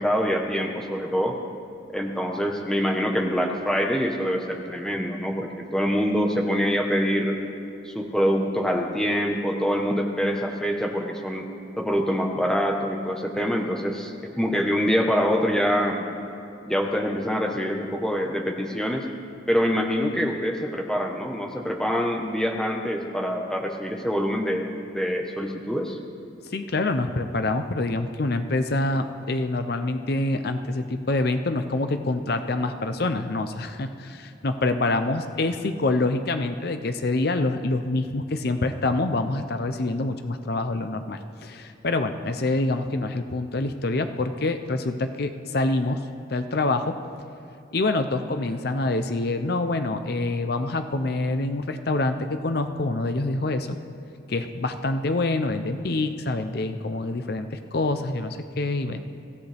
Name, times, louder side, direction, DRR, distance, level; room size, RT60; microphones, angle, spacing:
voice 1, 0.0-1.4 1.9-7.4 7.8-11.5 11.8-16.1 16.6-19.0 19.5-24.7 24.9-26.0, equal, 5° left, 1 dB, 1.1 m, -25 dB
voice 2, 26.4-47.0 47.7-53.8 54.3-59.0, left 2 dB, 55° left, 8 dB, 0.6 m, -26 dB
24.5 x 15.5 x 3.5 m, 2.6 s
head